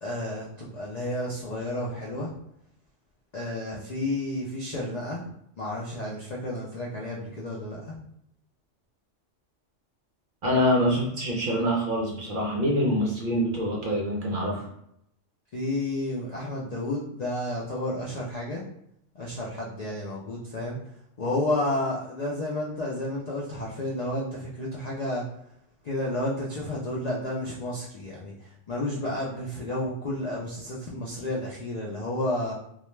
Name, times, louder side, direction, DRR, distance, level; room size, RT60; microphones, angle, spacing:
voice 1, 0.0-2.3 3.3-5.3 5.6-8.0 15.5-18.6 19.1-20.8 21.2-25.2 25.8-32.5, left 1 dB, 65° left, -4 dB, 0.4 m, -31 dB
voice 2, 10.4-14.7, equal, 55° right, -2 dB, 0.6 m, -25 dB
2.3 x 2.1 x 3.0 m, 0.76 s
omnidirectional pair, 1.2 m